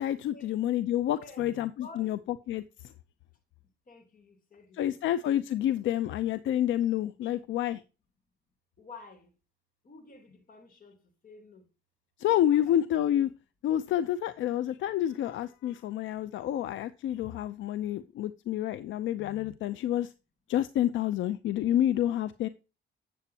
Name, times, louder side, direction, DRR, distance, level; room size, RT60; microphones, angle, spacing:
voice 1, 0.0-2.2 2.5-2.9 4.7-7.8 12.2-13.3 13.6-20.1 20.5-22.5, left 12 dB, 75° left, 0.5 m, -28 dB
voice 2, 1.1-1.5 1.8-2.1 3.9-5.0 8.8-9.3 9.8-11.0 11.2-11.6 12.2-12.8, left 3 dB, 45° left, 3.0 m, -50 dB
8.5 x 8.0 x 2.8 m
cardioid pair, 90°, 20 cm